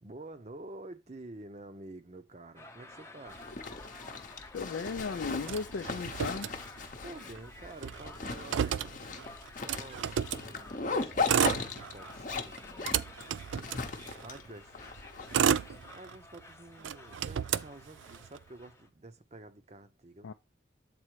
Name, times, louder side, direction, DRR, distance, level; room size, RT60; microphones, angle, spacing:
voice 1, 0.0-3.4 7.0-9.0 9.6-13.1 14.2-14.8 15.9-20.3, right 2 dB, 35° right, 0.7 m, -49 dB
sound 1, 2.6-18.9, left 2 dB, 15° left, 0.7 m, -52 dB
Zipper (clothing), 3.3-15.8, left 4 dB, 45° left, 0.8 m, -38 dB
voice 2, 4.5-6.5 20.2-20.3, left 4 dB, 75° left, 0.4 m, -36 dB
Motor vehicle (road), 5.4-7.1 7.4-7.5 7.7-10.5 11.1-12.2 12.6-14.4 15.0-16.4 16.8-18.4, right 8 dB, 75° right, 0.4 m, -32 dB
7.7 x 4.2 x 4.6 m
head